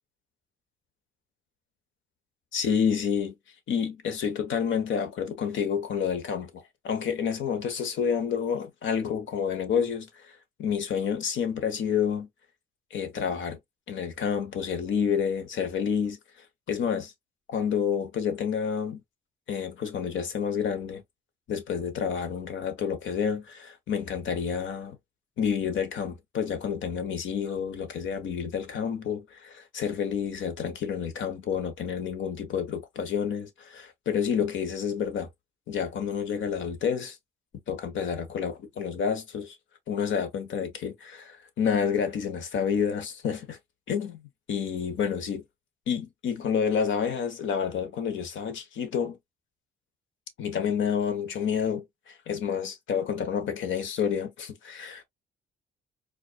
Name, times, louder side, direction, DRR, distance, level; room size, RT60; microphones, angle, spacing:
voice 1, 2.5-3.3 3.7-12.3 12.9-13.6 13.9-16.2 16.7-17.1 17.5-19.0 19.5-21.0 21.5-25.0 25.4-35.3 35.7-37.2 37.7-39.5 39.9-43.6 43.9-44.2 44.5-45.4 45.9-49.2 50.4-55.1, left 7 dB, 75° left, 1.2 m, -29 dB
4.7 x 2.6 x 2.3 m
cardioid pair, 90°, 20 cm